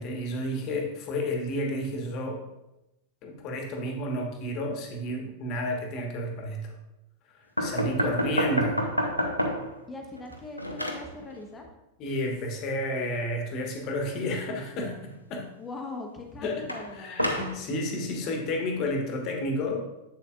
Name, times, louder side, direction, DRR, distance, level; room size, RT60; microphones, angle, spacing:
voice 1, 0.0-2.4 3.2-6.7 7.6-8.8 12.0-15.5 16.4-16.6 17.0-19.8, left 1 dB, 40° left, 2 dB, 1.4 m, -31 dB
sound 1, 7.6-9.8 10.2-11.1 16.7-17.6, left 1 dB, 90° left, 0.7 m, -28 dB
voice 2, 9.9-11.7 15.6-17.2, left 2 dB, 15° left, 2 dB, 1.1 m, -40 dB
7.8 x 7.0 x 2.4 m, 0.93 s
figure-of-eight pair, 90°, 0 cm